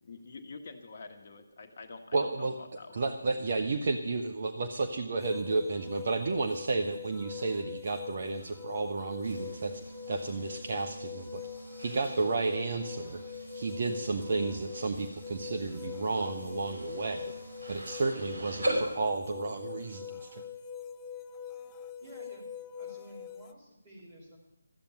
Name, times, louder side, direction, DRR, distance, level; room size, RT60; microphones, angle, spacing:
voice 1, 0.0-3.0, left 3 dB, 40° left, 4 dB, 1.4 m, -47 dB
voice 2, 2.1-2.5 2.9-9.8 10.1-11.4 11.8-13.2 13.5-17.3 17.7-20.4, right 3 dB, 45° right, 4 dB, 1.1 m, -32 dB
sound 1, 5.2-23.5, left 7 dB, 15° left, 0.5 m, -43 dB
sound 2, 9.2-19.0, right 1 dB, 60° right, 5.0 m, -40 dB
voice 3, 22.0-22.4 22.8-24.4, equal, 20° right, -3 dB, 5.6 m, -51 dB
14.0 x 8.8 x 9.8 m, 0.88 s
figure-of-eight pair, 155°, 0 cm